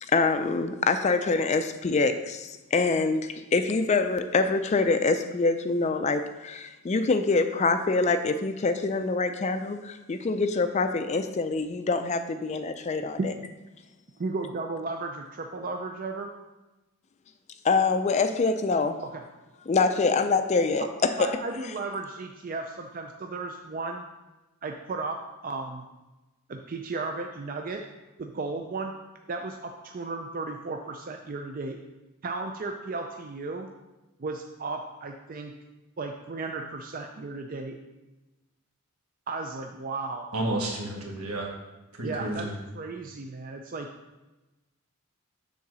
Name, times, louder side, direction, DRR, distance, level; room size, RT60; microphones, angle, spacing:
voice 1, 0.0-13.3 17.6-19.0 19.7-21.3, left 4 dB, 30° left, 9 dB, 0.4 m, -25 dB
voice 2, 14.2-16.3 19.1-19.2 20.8-20.9 21.2-24.0 24.6-25.9 26.5-27.8 28.2-29.0 29.3-31.8 32.2-33.7 34.2-35.5 36.0-37.8 39.3-40.3 42.0-42.5 42.7-43.9, right 3 dB, 40° right, 3 dB, 0.4 m, -34 dB
voice 3, 40.3-41.5 41.9-42.5, right 1 dB, 75° right, -1 dB, 1.7 m, -31 dB
7.2 x 4.0 x 6.1 m, 1.1 s
head